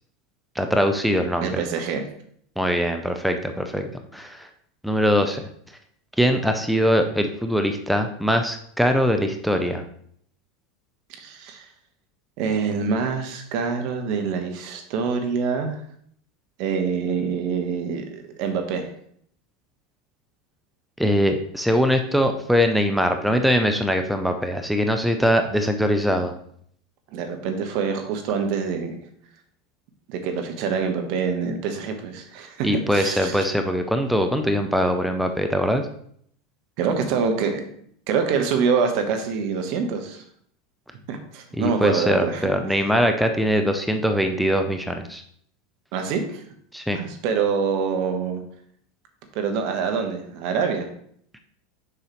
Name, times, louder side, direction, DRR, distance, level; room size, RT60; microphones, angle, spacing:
voice 1, 0.6-1.6 2.6-4.5 4.8-5.4 6.2-9.8 21.0-26.3 32.6-35.9 41.6-45.2 46.7-47.0, equal, ahead, 6 dB, 0.6 m, -22 dB
voice 2, 1.4-2.1 11.1-11.7 12.4-15.8 16.6-18.9 27.1-29.0 30.1-33.5 36.8-37.6 38.1-40.2 41.1-42.5 45.9-46.4 46.9-48.4 49.3-50.9, right 6 dB, 55° right, 5 dB, 1.1 m, -25 dB
6.8 x 5.6 x 3.1 m, 0.64 s
hypercardioid pair, 85°, 0 cm